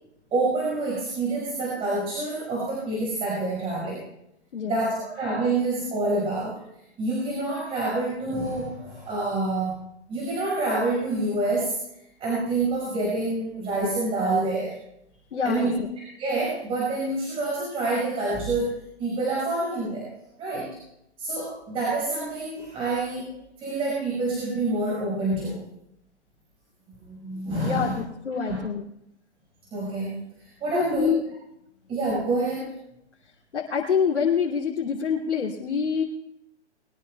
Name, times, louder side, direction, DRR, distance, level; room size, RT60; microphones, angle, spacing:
voice 1, 0.3-4.0 4.6-6.6 7.0-9.8 10.1-11.8 12.2-14.8 15.4-18.7 19.0-20.1 20.4-20.8 21.2-25.6 27.0-28.0 28.4-28.6 29.7-31.1 31.9-32.7, right 2 dB, 15° right, -5 dB, 5.5 m, -27 dB
voice 2, 15.3-15.9 27.6-28.8 30.7-31.2 33.5-36.0, left 6 dB, 85° left, -4 dB, 2.9 m, -26 dB
22.0 x 19.0 x 2.4 m, 0.81 s
hypercardioid pair, 145°, 34 cm